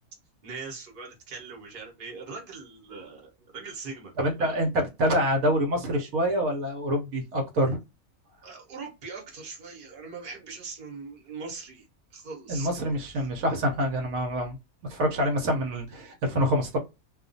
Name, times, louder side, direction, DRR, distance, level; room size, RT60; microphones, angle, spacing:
voice 1, 0.4-4.1 4.4-4.7 8.4-11.8 12.1-13.0 16.3-16.4, right 4 dB, 40° right, 1.0 m, -41 dB
voice 2, 4.2-7.8 12.5-14.6 14.9-16.8, equal, 75° right, 1.1 m, -26 dB
2.4 x 2.3 x 2.5 m
omnidirectional pair, 1.5 m